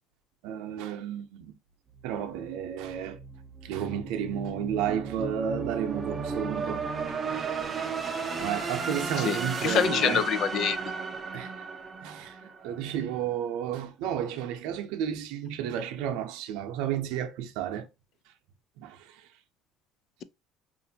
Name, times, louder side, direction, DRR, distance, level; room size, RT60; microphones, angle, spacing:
voice 1, 0.4-1.6 2.0-3.2 3.6-7.2 8.4-10.3 11.3-11.5 12.0-17.9 18.8-19.3, right 9 dB, 80° right, 0.7 m, -32 dB
sound 1, 1.9-12.9, right 4 dB, 20° right, 0.6 m, -35 dB
voice 2, 9.2-10.8, left 8 dB, 45° left, 0.4 m, -26 dB
4.8 x 2.6 x 2.8 m
cardioid pair, 145°, 0 cm